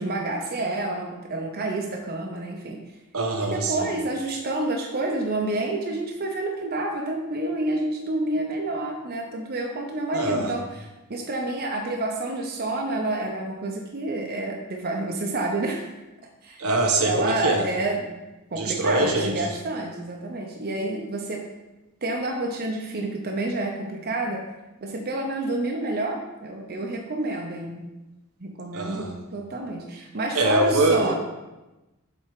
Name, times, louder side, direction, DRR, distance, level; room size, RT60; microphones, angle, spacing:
voice 1, 0.0-2.8 3.4-15.9 16.4-16.6 17.0-18.1 18.5-21.4 22.0-24.4 24.8-27.9 28.4-31.1, right 2 dB, 45° right, 1 dB, 0.8 m, -29 dB
voice 2, 3.1-3.9 10.1-10.5 16.6-17.7 18.5-19.5 28.7-29.1 30.3-31.1, right 2 dB, 75° right, 2 dB, 1.1 m, -23 dB
7.4 x 4.4 x 4.9 m, 1.0 s
head